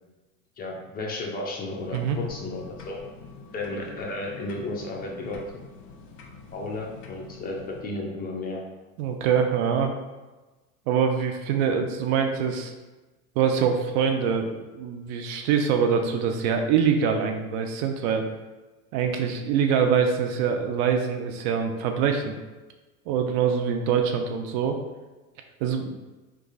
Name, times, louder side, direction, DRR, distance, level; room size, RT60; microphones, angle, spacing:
voice 1, 0.6-3.0 3.5-5.4 6.5-8.6, left 2 dB, 20° left, -1 dB, 0.5 m, -33 dB
sound 1, 1.8-7.8, left 4 dB, 60° left, 0.8 m, -46 dB
voice 2, 9.0-9.9 10.9-12.7 13.4-18.3 18.9-22.4 23.1-24.8 25.6-25.9, right 7 dB, 50° right, 5 dB, 0.5 m, -24 dB
3.0 x 2.3 x 3.9 m, 1.2 s
hypercardioid pair, 110°, 43 cm